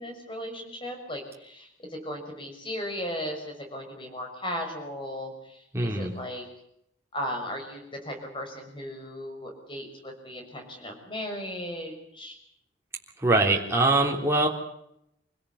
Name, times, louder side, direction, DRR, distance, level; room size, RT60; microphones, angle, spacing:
voice 1, 0.0-6.5 7.1-12.4, equal, 25° left, 3 dB, 6.3 m, -36 dB
voice 2, 5.7-6.1 13.2-14.5, right 2 dB, 15° right, -1 dB, 3.4 m, -22 dB
27.0 x 17.0 x 8.4 m, 0.78 s
head